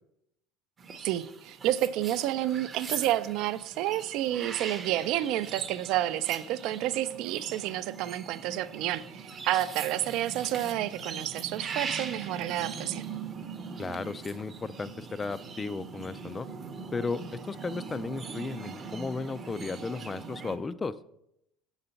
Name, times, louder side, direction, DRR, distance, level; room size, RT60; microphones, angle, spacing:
sound 1, 0.8-20.6, right 5 dB, 30° right, 0.7 m, -41 dB
voice 1, 1.0-13.1, right 13 dB, 65° right, 15 dB, 0.4 m, -30 dB
voice 2, 13.8-16.5 16.9-20.9, left 4 dB, 20° left, 15 dB, 0.3 m, -35 dB
6.6 x 4.0 x 5.7 m, 0.79 s
supercardioid pair, 110°, 0 cm